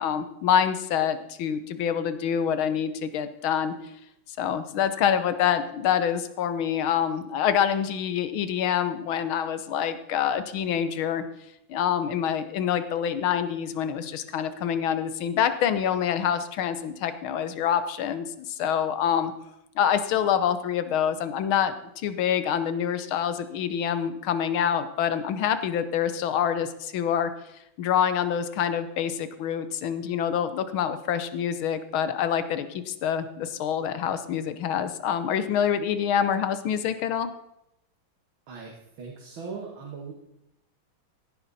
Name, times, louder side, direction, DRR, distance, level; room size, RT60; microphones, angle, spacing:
voice 1, 0.0-3.7 4.4-11.2 11.7-19.3 19.8-27.3 27.8-37.3, left 8 dB, 90° left, 11 dB, 1.8 m, -26 dB
voice 2, 38.5-40.1, right 5 dB, 80° right, -1 dB, 2.5 m, -39 dB
16.5 x 10.5 x 4.2 m, 0.84 s
omnidirectional pair, 2.2 m